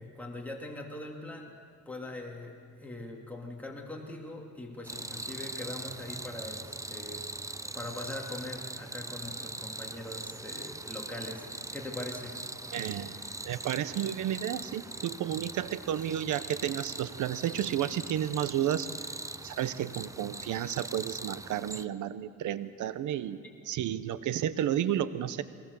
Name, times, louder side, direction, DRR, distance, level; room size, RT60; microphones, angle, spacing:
voice 1, 0.0-7.2 7.7-12.4, left 2 dB, 5° left, -1 dB, 3.0 m, -42 dB
sound 1, 4.8-21.9, right 2 dB, 10° right, 0.6 m, -41 dB
voice 2, 12.7-13.2 13.4-18.9 19.4-25.4, right 11 dB, 80° right, 15 dB, 0.9 m, -32 dB
22.5 x 19.0 x 7.0 m, 2.1 s
cardioid pair, 90°, 30 cm